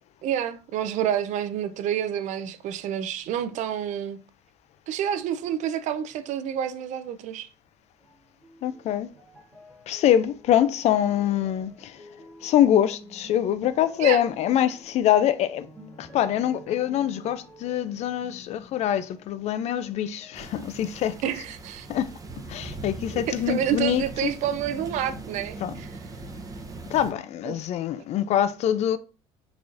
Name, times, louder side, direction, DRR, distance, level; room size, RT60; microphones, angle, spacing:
voice 1, 0.2-4.2 4.9-7.5 14.0-14.2 21.2-21.9 23.1-25.9 27.5-27.6, right 10 dB, 60° right, 0.4 m, -28 dB
sound 1, 8.0-21.5 21.8-22.7 23.4-23.5, equal, 10° left, 1.2 m, -50 dB
voice 2, 8.6-9.1 9.9-12.1 12.4-15.7 16.0-21.2 21.9-22.2 22.5-24.3 25.6-25.8 26.9-29.0, left 11 dB, 50° left, 0.4 m, -24 dB
sound 2, 20.3-27.1, right 3 dB, 25° right, 0.7 m, -40 dB
3.9 x 3.0 x 2.5 m
supercardioid pair, 90°, 14 cm